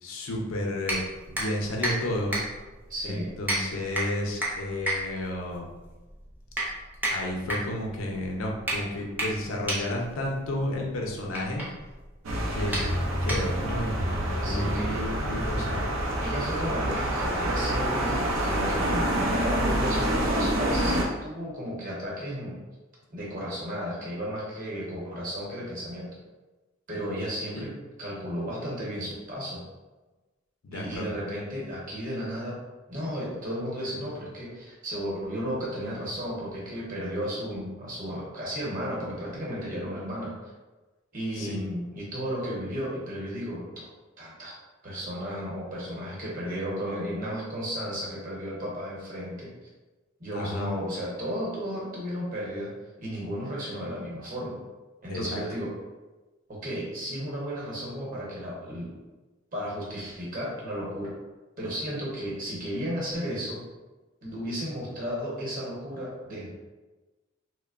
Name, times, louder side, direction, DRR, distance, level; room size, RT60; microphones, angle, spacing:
voice 1, 0.0-1.0 1.3-2.4 3.0-5.7 7.1-11.6 12.5-12.8 13.2-15.9 27.5-27.6 30.6-31.1 41.3-41.6 50.3-50.7 55.1-55.4, left 1 dB, 90° left, 0 dB, 0.5 m, -32 dB
sound 1, 0.8-13.8, right 1 dB, 10° right, 0.5 m, -33 dB
voice 2, 2.9-3.3 12.7-12.8 14.4-15.0 16.2-22.6 23.1-26.1 26.9-27.7 28.0-29.6 30.7-32.6 32.9-40.3 41.1-43.9 44.2-44.5 44.8-49.5 50.2-52.7 53.0-54.6 55.0-55.7 56.5-58.9 59.5-61.1 61.6-63.6 64.2-66.5, equal, 45° right, -5 dB, 0.9 m, -34 dB
sound 2, 12.2-21.0, right 1 dB, 85° right, 0.5 m, -27 dB
2.9 x 2.0 x 2.4 m, 1.2 s
head